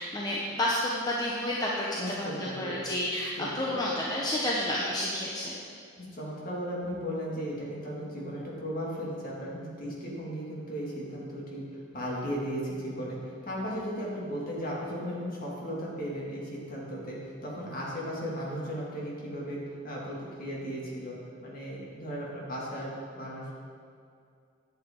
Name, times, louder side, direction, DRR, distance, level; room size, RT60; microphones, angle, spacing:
voice 1, 0.0-5.6, left 1 dB, 20° left, -4 dB, 0.8 m, -30 dB
voice 2, 2.0-2.8 3.4-3.8 6.0-11.6 11.9-19.6 19.8-21.2 21.4-23.5, equal, 50° left, -5 dB, 2.3 m, -36 dB
11.0 x 8.1 x 3.7 m, 2.4 s
head